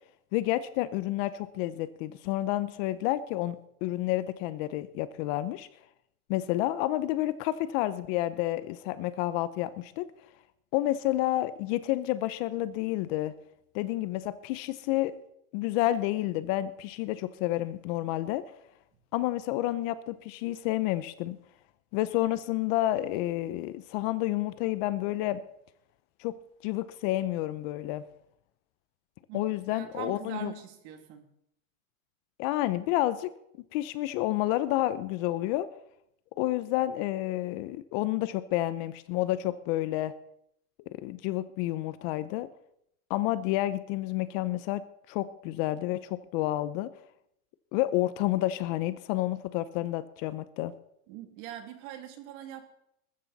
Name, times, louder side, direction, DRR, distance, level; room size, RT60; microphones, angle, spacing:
voice 1, 0.3-5.7 6.3-10.1 10.7-13.3 13.7-15.1 15.5-18.4 19.1-21.4 21.9-25.4 26.2-26.3 26.6-28.0 29.3-30.5 32.4-33.3 33.7-35.7 36.4-40.1 40.9-42.5 43.1-46.9 47.7-50.7, left 15 dB, 40° left, 14 dB, 0.7 m, -30 dB
voice 2, 29.3-31.2 51.1-52.7, right 11 dB, 50° right, 6 dB, 2.7 m, -42 dB
20.0 x 14.0 x 4.1 m, 0.77 s
supercardioid pair, 145°, 44 cm